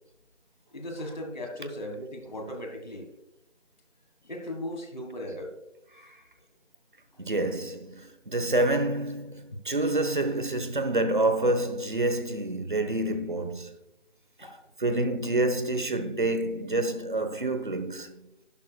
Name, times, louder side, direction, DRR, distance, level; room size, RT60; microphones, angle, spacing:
voice 1, 0.7-3.1 4.2-5.6 14.4-14.6, left 1 dB, 35° left, 1.7 m, -37 dB
voice 2, 7.2-13.7 14.4-14.5 14.8-18.3, right 2 dB, 40° right, 1.0 m, -28 dB
13.0 x 11.5 x 2.3 m
figure-of-eight pair, 170°, 37 cm